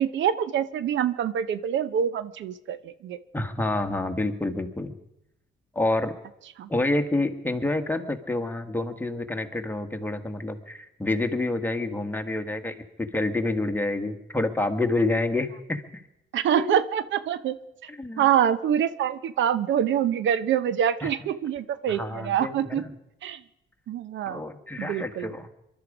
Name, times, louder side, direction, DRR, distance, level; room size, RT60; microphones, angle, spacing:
voice 1, 0.0-3.2 6.6-6.7 16.3-17.6 18.2-22.8 23.2-23.4 23.9-24.4 24.8-25.5, right 9 dB, 70° right, 15 dB, 0.7 m, -25 dB
voice 2, 3.3-4.9 5.7-6.1 6.7-15.8 16.5-16.8 17.9-18.3 21.0-21.1 21.9-22.9 24.3-25.5, left 2 dB, 10° left, 5 dB, 1.6 m, -28 dB
22.5 x 12.0 x 5.0 m, 0.86 s
cardioid pair, 90°, 20 cm